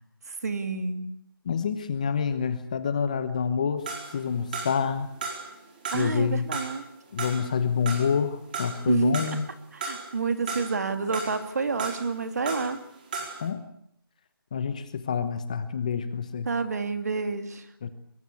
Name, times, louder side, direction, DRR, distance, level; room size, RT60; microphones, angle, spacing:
voice 1, 0.3-1.1 5.9-6.9 8.9-9.3 9.7-12.8 16.4-17.7, right 4 dB, 45° right, 8 dB, 2.6 m, -29 dB
voice 2, 1.5-3.8 4.1-5.1 5.9-6.5 7.1-9.4 13.4-13.6 14.5-16.5 17.8-17.9, left 6 dB, 20° left, 11 dB, 1.0 m, -27 dB
sound 1, 3.9-4.9 5.2-6.1 6.5-9.5 9.8-10.8 11.1-12.8 13.1-13.5, right 4 dB, 20° right, 4.6 m, -35 dB
24.0 x 22.5 x 8.5 m, 0.71 s
figure-of-eight pair, 175°, 12 cm